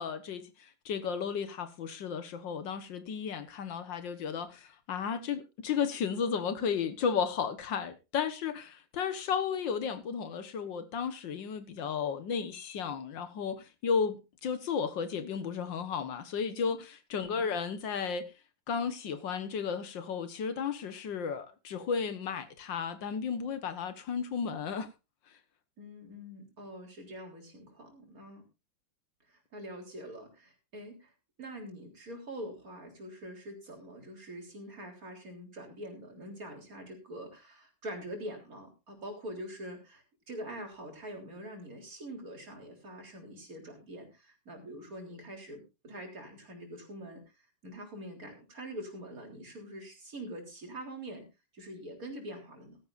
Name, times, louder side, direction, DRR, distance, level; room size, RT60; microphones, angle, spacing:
voice 1, 0.0-18.3 18.7-24.9, left 6 dB, 75° left, 2.0 m, -34 dB
voice 2, 17.1-17.5 25.8-28.4 29.3-31.1 31.4-47.2 47.6-51.2 51.5-52.8, right 1 dB, 45° right, 4.0 m, -44 dB
16.0 x 13.5 x 2.6 m
omnidirectional pair, 2.0 m